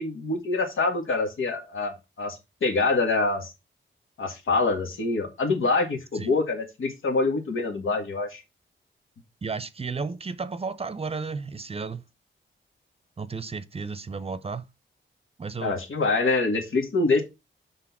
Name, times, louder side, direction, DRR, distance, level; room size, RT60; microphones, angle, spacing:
voice 1, 0.0-3.5 4.2-8.4 15.6-17.2, left 3 dB, 90° left, 1.9 m, -25 dB
voice 2, 9.4-12.0 13.2-14.6 15.4-15.7, right 4 dB, 30° right, 0.6 m, -33 dB
6.3 x 4.0 x 5.9 m
wide cardioid pair, 130°, 20 cm